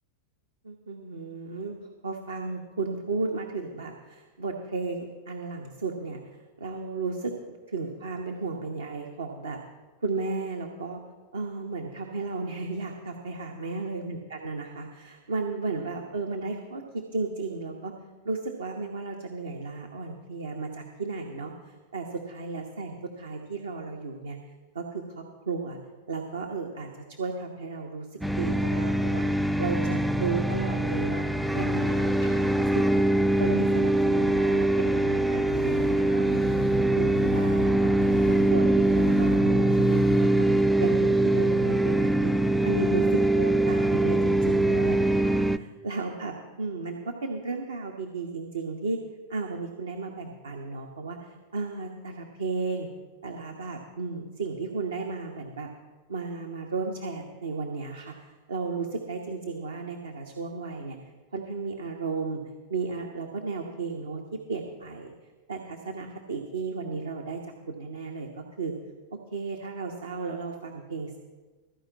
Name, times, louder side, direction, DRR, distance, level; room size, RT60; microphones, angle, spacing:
voice 1, 0.6-1.8 2.0-6.2 6.6-7.3 7.7-9.6 10.0-11.0 11.3-17.9 18.2-24.4 24.7-25.8 26.1-26.9 27.2-31.3 31.5-33.0 33.4-36.4 36.8-37.7 38.2-40.5 40.8-42.3 42.6-49.0 49.3-52.9 53.2-55.7 56.1-61.0 61.3-62.4 62.7-64.2 64.5-65.1 65.5-67.4 67.7-68.3 68.6-68.7 69.3-71.2, right 4 dB, 70° right, 2 dB, 1.0 m, -34 dB
sound 1, 28.2-45.6, right 1 dB, ahead, 0.4 m, -23 dB
sound 2, 35.5-40.6, left 12 dB, 55° left, 0.6 m, -38 dB
14.0 x 5.1 x 8.5 m, 1.3 s
figure-of-eight pair, 90°, 0 cm